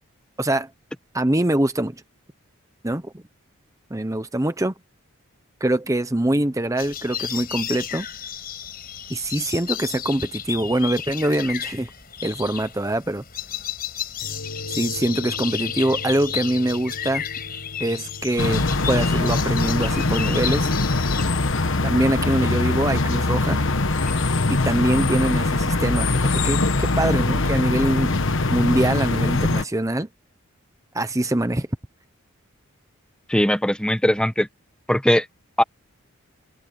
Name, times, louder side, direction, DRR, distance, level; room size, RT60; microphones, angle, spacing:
voice 1, 0.4-0.7 1.1-2.0 2.8-3.2 3.9-4.7 5.6-8.1 9.1-11.9 12.2-13.2 14.7-17.2 17.8-20.7 21.8-23.6 24.5-28.2 28.5-30.1 30.9-31.7, right 1 dB, 15° right, 0.8 m, -23 dB
sound 1, 6.8-21.2, left 9 dB, 45° left, 5.5 m, -32 dB
sound 2, 14.2-28.8, left 1 dB, 85° left, 5.1 m, -42 dB
sound 3, 18.4-29.6, left 2 dB, 60° left, 1.2 m, -22 dB
voice 2, 33.3-34.5 34.9-35.2 35.6-35.7, equal, 5° left, 1.1 m, -19 dB
head